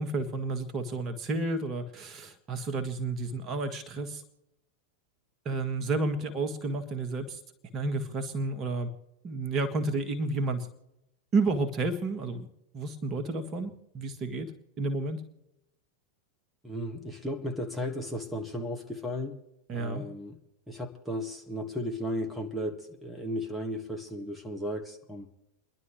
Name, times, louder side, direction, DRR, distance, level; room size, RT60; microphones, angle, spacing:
voice 1, 0.0-4.2 5.4-7.4 7.7-8.9 9.2-10.7 11.3-12.5 12.7-15.2 19.7-20.0, right 3 dB, 30° right, 6 dB, 1.6 m, -31 dB
voice 2, 16.6-19.4 19.7-20.4 20.7-25.3, equal, ahead, 1 dB, 1.6 m, -35 dB
30.0 x 11.5 x 3.1 m, 0.86 s
figure-of-eight pair, 90°, 0 cm